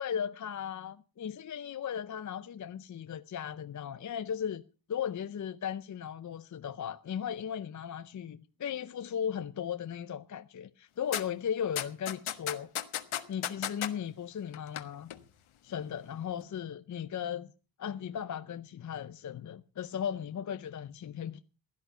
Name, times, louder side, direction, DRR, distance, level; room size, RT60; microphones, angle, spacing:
voice 1, 0.0-4.6 4.9-12.7 13.3-15.1 15.6-17.5 17.8-21.4, left 8 dB, 35° left, 0.6 m, -36 dB
sound 1, 11.1-11.2 11.8-13.9 14.5-14.8 15.1-15.2, left 11 dB, 75° left, 1.5 m, -33 dB
16.0 x 10.5 x 5.7 m
cardioid pair, 125°, 49 cm